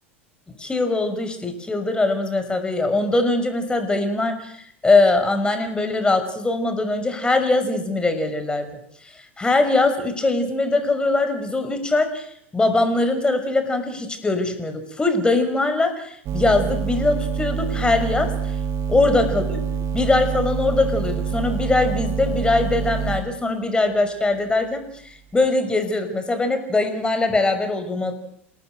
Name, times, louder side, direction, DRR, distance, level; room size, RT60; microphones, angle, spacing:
voice 1, 0.6-4.5 4.8-8.7 9.4-12.3 12.5-18.3 18.9-19.6 19.9-24.8 25.3-28.1, left 2 dB, 15° left, 8 dB, 5.9 m, -21 dB
sound 1, 16.3-23.3, right 6 dB, 40° right, 1.9 m, -26 dB
28.5 x 18.5 x 8.0 m, 0.70 s
hypercardioid pair, 85°, 7 cm